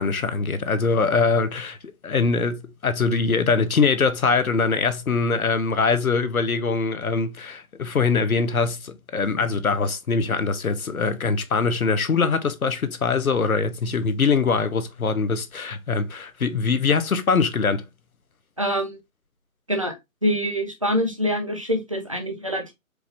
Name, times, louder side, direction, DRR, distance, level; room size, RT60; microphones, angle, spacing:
voice 1, 0.0-17.8, left 4 dB, 90° left, 0.9 m, -23 dB
voice 2, 18.6-19.0 19.7-20.0 20.2-22.7, equal, 25° right, 0.5 m, -25 dB
4.7 x 2.6 x 3.3 m
figure-of-eight pair, 160°, 41 cm